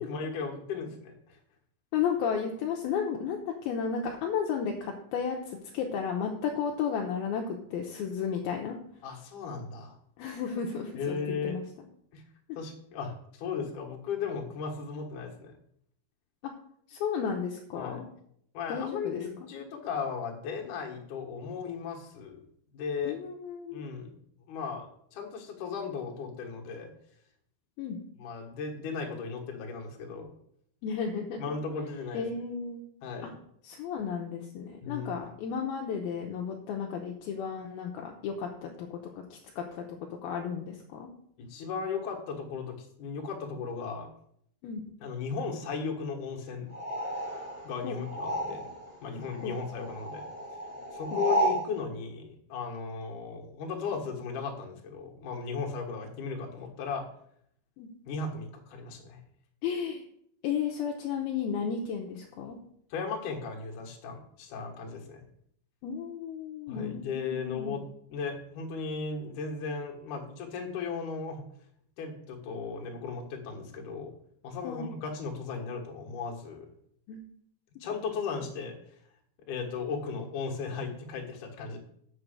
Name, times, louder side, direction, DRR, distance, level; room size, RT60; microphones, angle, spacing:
voice 1, 0.0-1.4 9.0-10.0 10.9-11.6 12.1-12.2 12.6-15.5 17.8-18.1 18.5-22.4 22.7-23.2 23.7-24.1 24.5-26.9 28.2-30.3 31.4-32.3 33.0-33.4 34.8-35.2 41.4-44.1 45.0-46.7 47.6-48.7 49.0-50.3 50.9-57.1 58.1-59.2 62.9-65.2 66.7-71.4 72.0-74.1 74.4-76.7 77.8-78.7 79.5-81.8, left 5 dB, 60° left, 1 dB, 2.5 m, -36 dB
voice 2, 1.9-8.8 10.2-11.2 11.4-11.6 16.9-18.0 18.7-19.2 23.0-23.9 27.8-28.0 30.8-31.4 32.1-32.8 33.6-39.0 39.3-39.8 40.2-41.1 44.6-44.8 47.8-48.0 49.4-49.5 51.1-51.2 57.8-57.9 59.6-60.0 60.4-62.6 65.8-67.8 74.6-74.9 77.1-77.2, left 7 dB, 75° left, 1 dB, 2.4 m, -33 dB
sound 1, 46.7-48.9 49.2-51.7, right 1 dB, 25° right, 2.5 m, -32 dB
7.5 x 6.8 x 6.6 m, 0.68 s
omnidirectional pair, 5.0 m